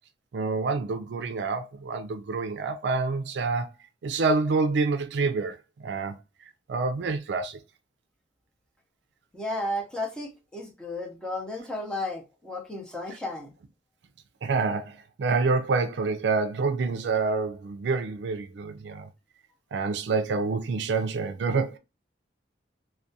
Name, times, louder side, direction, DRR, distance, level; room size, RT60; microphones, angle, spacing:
voice 1, 0.3-3.7 4.0-6.1 6.7-7.6 14.4-19.1 19.7-21.8, right 4 dB, 70° right, 0.4 m, -27 dB
voice 2, 9.3-13.5, left 1 dB, 5° left, 0.5 m, -33 dB
2.3 x 2.1 x 2.6 m
head